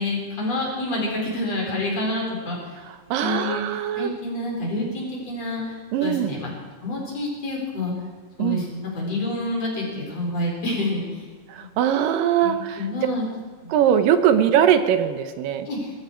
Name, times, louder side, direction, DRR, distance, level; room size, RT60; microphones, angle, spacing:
voice 1, 0.0-2.7 3.2-6.5 6.8-7.9 8.4-11.3 11.6-11.7 12.4-13.3 13.6-13.8 15.7-15.9, left 2 dB, 50° left, -2 dB, 5.4 m, -28 dB
voice 2, 3.1-4.1 5.9-6.3 8.4-8.6 11.5-12.8 13.7-15.7, right 9 dB, 90° right, 10 dB, 2.7 m, -21 dB
21.5 x 14.0 x 4.6 m, 1.5 s
omnidirectional pair, 3.8 m